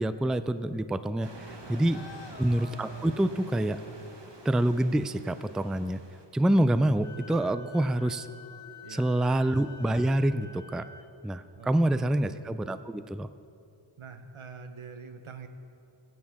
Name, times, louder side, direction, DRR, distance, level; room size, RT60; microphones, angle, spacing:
voice 1, 0.0-2.0 2.4-3.8 4.4-6.0 6.3-8.3 8.9-10.9 11.2-13.3, right 1 dB, ahead, 12 dB, 0.3 m, -27 dB
sound 1, 1.2-7.4, right 2 dB, 60° right, 1.5 m, -49 dB
voice 2, 1.6-2.3 8.8-9.4 11.6-12.2 14.0-15.5, right 5 dB, 85° right, 7 dB, 0.9 m, -46 dB
sound 2, 1.9-4.1 5.1-5.4 7.6-10.3, left 5 dB, 65° left, 1.1 m, -52 dB
Wind instrument woodwind instrument, 7.0-11.1, left 6 dB, 35° left, 1.9 m, -49 dB
20.0 x 9.4 x 3.6 m, 2.5 s
wide cardioid pair, 40°, 48 cm